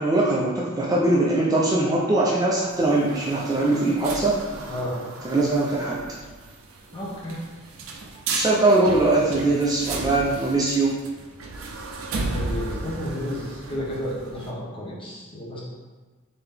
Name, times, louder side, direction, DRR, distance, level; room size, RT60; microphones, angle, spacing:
voice 1, 0.0-4.4 5.2-6.0 8.3-11.0, right 2 dB, 20° right, -5 dB, 0.4 m, -21 dB
sound 1, 2.5-14.5, right 3 dB, 75° right, 0.5 m, -35 dB
voice 2, 4.7-5.0 6.9-7.4 12.1-15.6, equal, 25° left, -5 dB, 0.8 m, -32 dB
3.7 x 2.8 x 3.4 m, 1.3 s
head